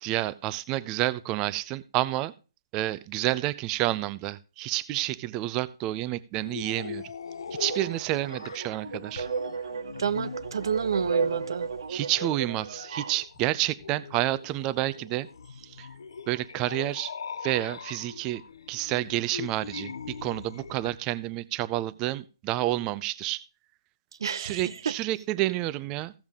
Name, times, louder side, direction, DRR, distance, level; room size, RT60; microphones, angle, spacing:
voice 1, 0.0-2.3 2.7-7.0 7.6-9.3 11.9-15.3 15.6-15.9 16.3-17.1 17.4-18.4 18.7-23.4 24.3-26.1, right 16 dB, 20° right, 0.5 m, -29 dB
sound 1, 6.4-21.0, left 6 dB, 70° left, 0.6 m, -41 dB
sound 2, 7.6-13.2, right 5 dB, 80° right, 1.8 m, -34 dB
voice 2, 10.0-11.7 24.2-25.0, right 6 dB, 65° right, 0.8 m, -29 dB
15.5 x 7.2 x 3.6 m
hypercardioid pair, 160°, 3 cm